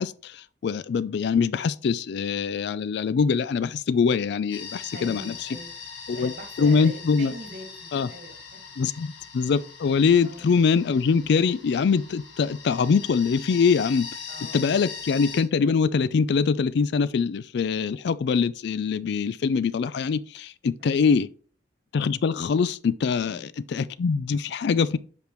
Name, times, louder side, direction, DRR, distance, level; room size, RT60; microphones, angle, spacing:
voice 1, 0.0-5.3 6.1-6.3 6.6-7.3 7.9-8.1 8.8-14.1 14.5-21.3 21.9-25.0, left 5 dB, 65° left, 0.4 m, -23 dB
sound 1, 4.5-15.4, left 6 dB, 90° left, 1.3 m, -41 dB
voice 2, 4.9-5.7 6.1-8.6 8.9-9.0 10.2-10.5 14.3-14.8 20.8-21.0 23.2-23.5, right 1 dB, 50° right, 2.4 m, -42 dB
8.1 x 5.1 x 3.1 m
head